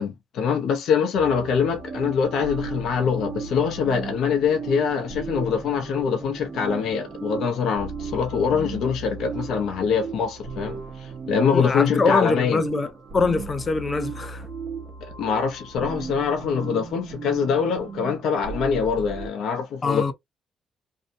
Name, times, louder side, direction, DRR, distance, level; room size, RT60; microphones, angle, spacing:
voice 1, 0.0-12.6 15.0-20.1, left 6 dB, 75° left, 0.6 m, -24 dB
sound 1, 1.1-19.3, right 5 dB, 50° right, 0.9 m, -36 dB
voice 2, 11.5-14.5 19.8-20.1, left 4 dB, 35° left, 0.6 m, -24 dB
2.7 x 2.1 x 2.6 m
cardioid pair, 90°, 0 cm